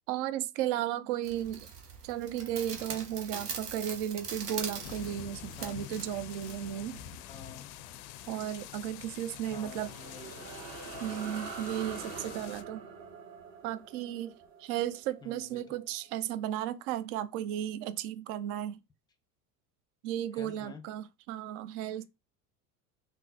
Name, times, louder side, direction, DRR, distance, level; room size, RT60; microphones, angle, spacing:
voice 1, 0.1-1.7 2.0-7.0 8.3-9.9 11.0-12.8 13.6-14.3 14.6-18.8 20.0-22.0, right 11 dB, 55° right, 0.5 m, -35 dB
sound 1, 1.2-7.2, right 5 dB, 90° right, 0.8 m, -42 dB
sound 2, 4.8-12.6, left 12 dB, 55° left, 0.5 m, -46 dB
voice 2, 7.3-7.7 9.4-10.5 15.2-15.8 20.3-20.8 21.9-22.0, left 4 dB, 10° left, 0.6 m, -49 dB
sound 3, 9.3-16.1, right 5 dB, 40° right, 0.9 m, -45 dB
3.7 x 2.2 x 2.6 m
hypercardioid pair, 75°, 46 cm